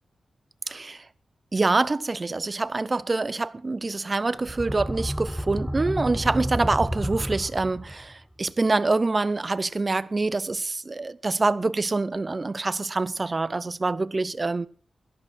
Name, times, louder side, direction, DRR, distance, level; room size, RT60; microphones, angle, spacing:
voice 1, 0.7-1.0 1.5-14.7, right 3 dB, 30° right, 0.7 m, -26 dB
sound 1, 4.3-8.1, equal, ahead, 0.8 m, -30 dB
17.5 x 13.5 x 4.3 m
wide cardioid pair, 110°, 0 cm